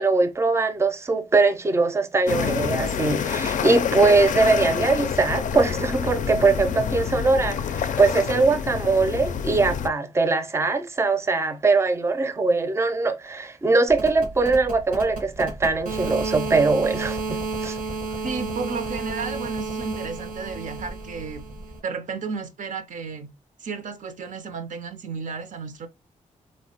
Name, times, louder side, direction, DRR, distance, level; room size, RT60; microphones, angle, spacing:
voice 1, 0.0-17.8, right 3 dB, 20° right, 0.5 m, -21 dB
sound 1, 2.3-9.9, left 7 dB, 70° left, 0.4 m, -27 dB
sound 2, 13.9-21.8, right 3 dB, 85° right, 1.1 m, -32 dB
voice 2, 18.2-21.5 21.8-23.3 23.6-25.9, right 5 dB, 70° right, 0.5 m, -33 dB
3.1 x 2.1 x 2.8 m
cardioid pair, 65°, 14 cm